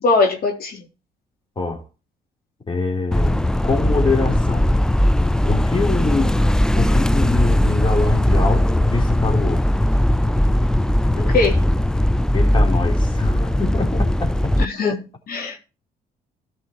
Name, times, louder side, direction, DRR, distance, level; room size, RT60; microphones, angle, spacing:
voice 1, 0.0-0.8 11.2-11.6 14.6-15.6, left 3 dB, 60° left, 3.6 m, -21 dB
voice 2, 2.7-4.7 5.4-6.5 6.8-9.7 12.3-14.6, left 3 dB, 25° left, 3.6 m, -24 dB
sound 1, 3.1-14.6, left 1 dB, 5° left, 0.4 m, -18 dB
14.0 x 5.7 x 4.7 m
supercardioid pair, 65°, 18 cm